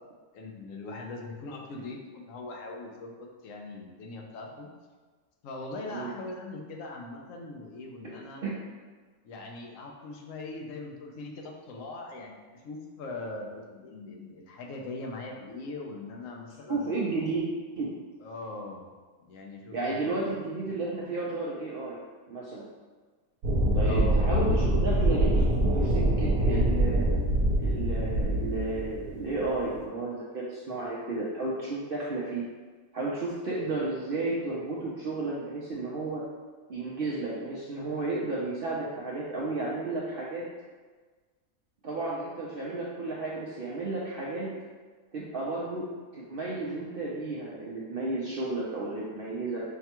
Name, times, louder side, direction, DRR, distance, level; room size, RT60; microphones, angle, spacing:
voice 1, 0.3-4.7 5.4-8.4 9.2-17.3 18.2-18.9 19.2-20.1 23.9-24.4, left 2 dB, 70° left, 1 dB, 1.0 m, -41 dB
voice 2, 16.7-17.4 17.8-18.0 19.7-22.0 22.3-22.7 23.7-25.4 25.7-27.1 27.6-32.5 32.9-36.2 36.7-40.4 41.8-44.5 45.1-49.6, right 2 dB, 65° right, -6 dB, 0.5 m, -32 dB
sound 1, 23.4-29.8, right 1 dB, 85° right, 1.1 m, -25 dB
5.6 x 2.2 x 2.9 m, 1.4 s
omnidirectional pair, 1.5 m